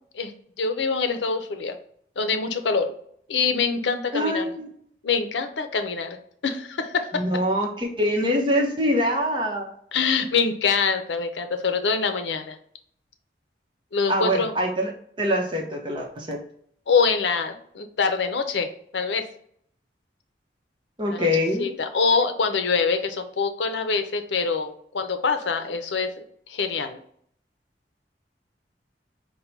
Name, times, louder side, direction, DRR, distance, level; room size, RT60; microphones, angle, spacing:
voice 1, 0.6-1.7 2.2-2.9 3.3-4.5 5.0-6.2 6.4-7.2 9.9-12.6 13.9-14.5 16.9-19.3 21.1-21.3 21.6-27.0, left 5 dB, 85° left, 8 dB, 0.6 m, -25 dB
voice 2, 4.1-4.7 7.1-9.7 14.1-16.4 21.0-21.7, equal, 25° right, 1 dB, 0.8 m, -24 dB
5.4 x 2.2 x 4.4 m, 0.63 s
head